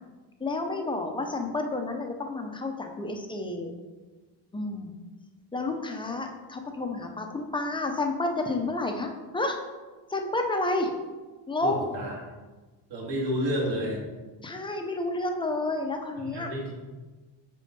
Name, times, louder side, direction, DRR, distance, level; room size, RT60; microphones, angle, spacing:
voice 1, 0.4-3.7 4.5-4.9 5.5-9.6 10.1-10.9 11.5-11.9 14.4-16.5, left 2 dB, 10° left, 4 dB, 0.6 m, -30 dB
voice 2, 11.6-12.1 12.9-14.0 16.3-16.7, equal, 55° right, -3 dB, 2.1 m, -30 dB
8.6 x 3.8 x 5.2 m, 1.3 s
cardioid pair, 180°, 46 cm